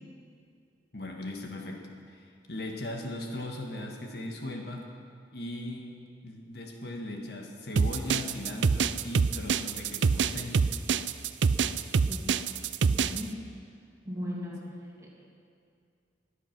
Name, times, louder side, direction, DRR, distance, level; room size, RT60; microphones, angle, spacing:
voice 1, 0.9-4.9 5.3-5.9 6.2-10.6, left 1 dB, 60° left, 1 dB, 1.6 m, -38 dB
sound 1, 7.8-13.2, right 5 dB, 85° right, 0.5 m, -25 dB
voice 2, 12.9-13.4 14.1-14.7 15.0-15.1, equal, 15° right, -4 dB, 2.7 m, -37 dB
23.0 x 8.4 x 6.0 m, 2.3 s
head